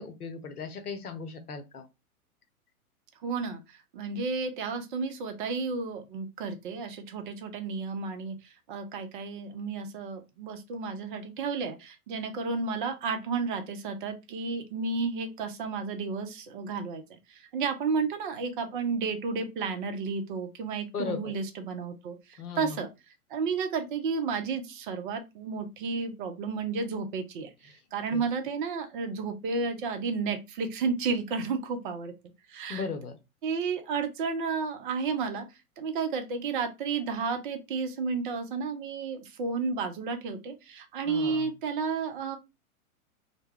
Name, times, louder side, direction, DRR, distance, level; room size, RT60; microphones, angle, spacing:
voice 1, 0.0-1.9 20.9-21.3 22.4-22.8 28.1-28.2 32.7-33.2 41.0-41.5, left 5 dB, 90° left, 0.7 m, -37 dB
voice 2, 3.2-8.4 8.7-17.0 17.3-22.9 23.3-32.1 32.5-32.9 33.4-35.4 35.8-42.4, right 4 dB, 35° right, 0.5 m, -32 dB
2.1 x 2.1 x 3.4 m
hypercardioid pair, 115°, 44 cm